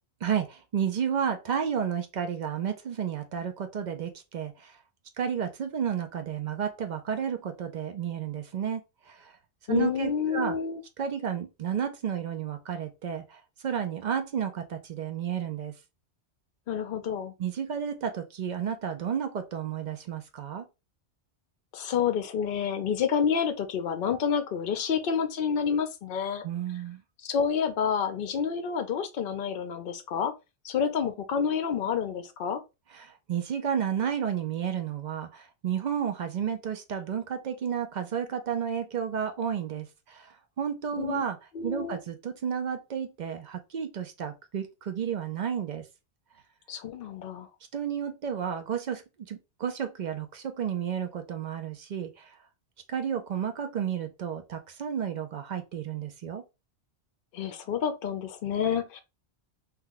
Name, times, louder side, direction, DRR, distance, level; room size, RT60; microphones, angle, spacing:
voice 1, 0.2-4.7 5.2-9.3 9.7-10.6 11.0-15.7 17.4-20.6 26.4-27.0 32.9-41.4 41.6-45.8 47.7-52.3 52.9-56.4, right 8 dB, 55° right, 0.5 m, -32 dB
voice 2, 9.7-10.8 16.7-17.3 21.7-26.4 27.2-30.3 30.6-32.6 41.0-41.2 41.5-42.0 46.7-47.5 57.3-59.0, left 7 dB, 60° left, 0.7 m, -29 dB
2.9 x 2.2 x 3.6 m
omnidirectional pair, 1.2 m